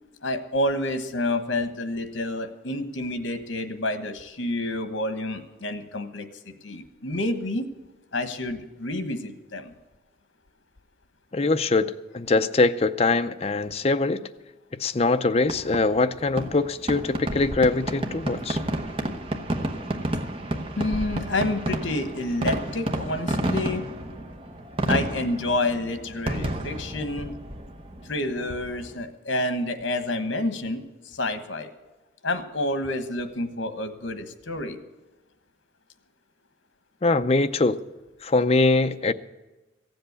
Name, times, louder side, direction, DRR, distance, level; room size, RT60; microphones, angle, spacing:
voice 1, 0.2-6.3 6.6-7.6 8.1-9.7 20.8-23.8 24.9-27.3 28.1-31.7 32.2-34.8, left 1 dB, 70° left, 9 dB, 1.3 m, -29 dB
voice 2, 11.3-14.2 14.8-18.6 37.0-37.8 38.2-39.1, left 3 dB, 30° left, 10 dB, 0.5 m, -22 dB
Fireworks, 15.4-29.0, right 1 dB, 30° right, 1.0 m, -31 dB
15.5 x 7.9 x 8.1 m, 1.1 s
head